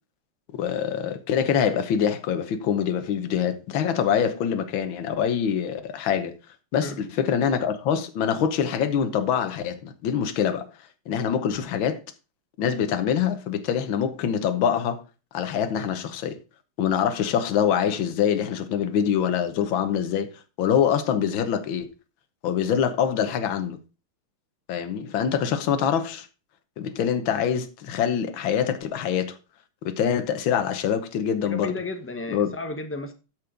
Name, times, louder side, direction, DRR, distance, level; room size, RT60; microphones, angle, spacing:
voice 1, 0.5-6.4 6.7-10.7 11.1-12.0 12.6-15.0 15.3-16.4 16.8-20.3 20.6-21.9 22.4-23.8 24.7-26.3 26.8-29.4 29.8-31.8 32.3-32.5, left 8 dB, 75° left, 1.8 m, -25 dB
voice 2, 31.4-33.1, left 3 dB, 15° left, 0.4 m, -33 dB
12.5 x 4.6 x 5.1 m
omnidirectional pair, 2.2 m